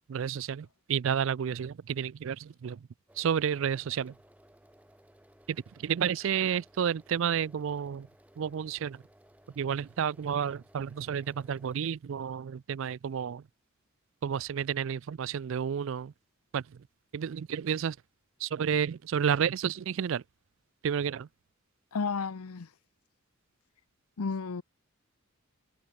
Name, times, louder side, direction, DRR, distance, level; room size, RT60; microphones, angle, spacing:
voice 1, 0.1-2.8 3.2-4.1 5.5-5.6 5.8-8.1 8.4-9.0 9.6-13.4 14.2-16.1 16.5-16.6 17.1-18.0 18.4-20.2 20.8-21.3, right 8 dB, 60° right, 0.3 m, -31 dB
sound 1, 3.1-11.8, equal, 5° right, 3.2 m, -60 dB
voice 2, 21.9-22.7 24.2-24.6, left 5 dB, 90° left, 0.7 m, -32 dB
head